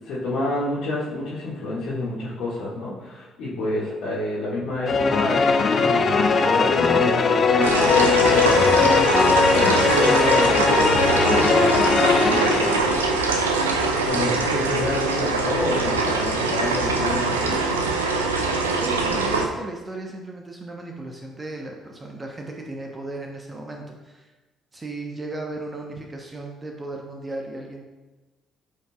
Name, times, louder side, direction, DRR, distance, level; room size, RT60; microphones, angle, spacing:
voice 1, 0.0-13.0 14.1-17.7, left 1 dB, 60° left, -11 dB, 2.2 m, -29 dB
sound 1, 4.9-13.4, left 4 dB, 40° left, 0.7 m, -19 dB
sound 2, 7.6-19.5, right 3 dB, 80° right, 0.6 m, -23 dB
voice 2, 18.8-24.3 24.7-27.9, right 2 dB, 25° right, 1 dB, 1.2 m, -35 dB
13.5 x 5.4 x 2.5 m, 1.2 s
figure-of-eight pair, 50°, 0 cm